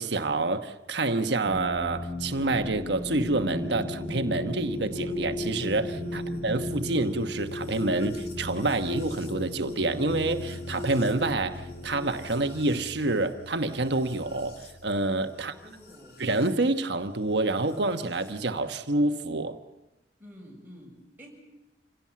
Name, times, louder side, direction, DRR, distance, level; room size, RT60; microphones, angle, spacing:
voice 1, 0.0-15.5 16.2-19.6, right 2 dB, 75° right, 1.2 m, -28 dB
sound 1, 1.4-16.5 17.7-18.3, left 2 dB, 60° left, 4.1 m, -38 dB
sound 2, 3.1-12.2, equal, 30° right, 4.4 m, -39 dB
voice 2, 6.0-6.4 15.3-16.3 20.2-21.3, equal, 10° right, 7.0 m, -49 dB
27.0 x 17.0 x 7.5 m
head